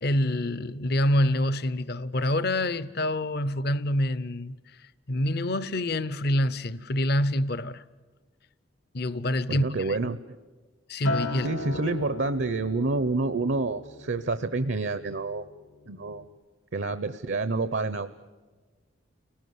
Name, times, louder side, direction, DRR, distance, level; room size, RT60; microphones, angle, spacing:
voice 1, 0.0-7.8 8.9-10.1 10.9-12.0, left 1 dB, 50° left, 0.7 m, -27 dB
voice 2, 9.5-10.4 11.4-15.4 15.9-16.3 16.7-18.1, right 3 dB, 60° right, 0.8 m, -28 dB
Acoustic guitar, 11.0-15.5 15.9-16.2, left 3 dB, 80° left, 1.6 m, -37 dB
30.0 x 19.0 x 9.6 m
head